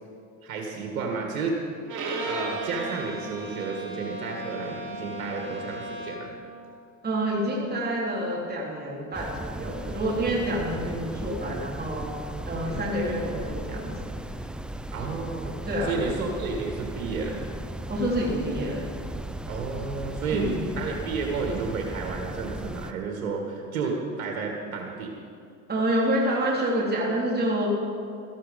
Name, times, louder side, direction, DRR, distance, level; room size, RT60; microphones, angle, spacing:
voice 1, 0.4-1.6 2.3-6.3 12.6-12.9 14.9-17.4 19.5-25.1, right 4 dB, 90° right, 1 dB, 1.8 m, -31 dB
Bowed string instrument, 1.9-6.4, right 2 dB, 45° right, 2.7 m, -35 dB
voice 2, 7.0-12.2 12.5-14.0 15.7-16.1 17.9-19.0 20.3-20.7 25.7-27.8, right 1 dB, 25° right, -4 dB, 3.4 m, -28 dB
sound 1, 9.1-22.9, right 1 dB, ahead, 0.3 m, -36 dB
13.5 x 12.0 x 5.2 m, 2.4 s
hypercardioid pair, 90°, 42 cm